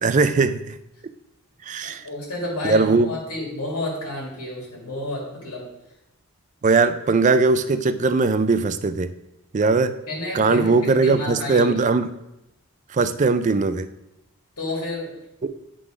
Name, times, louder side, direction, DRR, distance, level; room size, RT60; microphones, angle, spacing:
voice 1, 0.0-0.8 1.6-2.1 2.6-3.2 6.6-9.1 9.5-9.9 10.3-12.1 12.9-13.9 15.4-15.5, right 4 dB, 35° right, 11 dB, 0.3 m, -20 dB
voice 2, 1.8-5.6 9.7-9.8 10.1-10.7 11.0-11.7 14.6-15.1, left 2 dB, 85° left, -3 dB, 2.1 m, -30 dB
9.5 x 3.8 x 4.9 m, 0.89 s
head